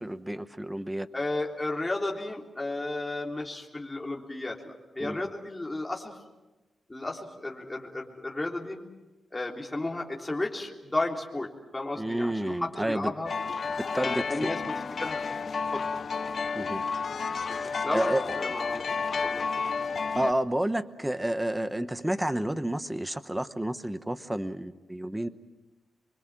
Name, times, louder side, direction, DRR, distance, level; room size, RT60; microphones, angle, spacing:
voice 1, 0.0-1.1 5.0-5.2 11.9-13.1 13.9-14.2 16.6-16.8 17.6-18.2 20.2-25.3, right 1 dB, 10° right, 11 dB, 0.9 m, -30 dB
voice 2, 1.1-6.2 6.9-8.8 9.3-13.3 13.9-15.3 15.7-15.9 17.8-18.9 19.2-19.5, left 2 dB, 15° left, -1 dB, 3.5 m, -33 dB
sound 1, 13.3-20.3, left 5 dB, 50° left, 0.8 m, -31 dB
25.0 x 24.0 x 7.4 m, 1.1 s
wide cardioid pair, 120°, 0 cm